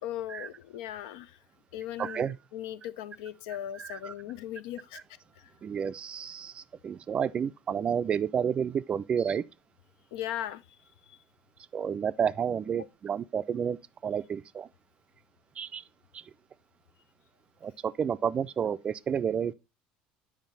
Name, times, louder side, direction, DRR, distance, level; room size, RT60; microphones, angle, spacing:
voice 1, 0.0-1.4 1.7-2.2 2.5-5.0 5.4-5.5 10.1-10.6 11.1-11.2, left 12 dB, 85° left, 0.5 m, -38 dB
voice 2, 2.0-2.4 3.7-4.1 5.6-9.4 11.7-14.7 15.6-15.8 16.1-16.2 17.6-19.5, right 7 dB, 35° right, 0.3 m, -30 dB
7.3 x 5.0 x 4.0 m
supercardioid pair, 110°, 3 cm